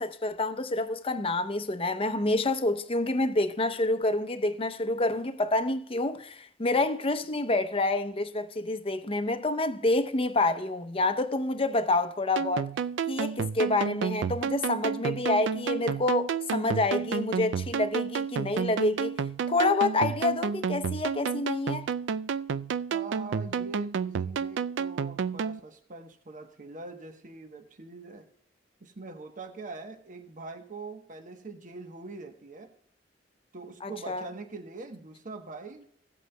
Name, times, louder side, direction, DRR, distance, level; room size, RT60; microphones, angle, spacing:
voice 1, 0.0-12.7 13.1-19.1 19.5-21.9 33.8-34.3, left 2 dB, 30° left, 0.7 m, -28 dB
sound 1, 12.4-25.6, right 6 dB, 85° right, 0.4 m, -31 dB
voice 2, 22.9-28.3 28.8-32.7 33.5-35.9, right 3 dB, 45° right, 1.0 m, -43 dB
17.0 x 8.2 x 2.2 m
head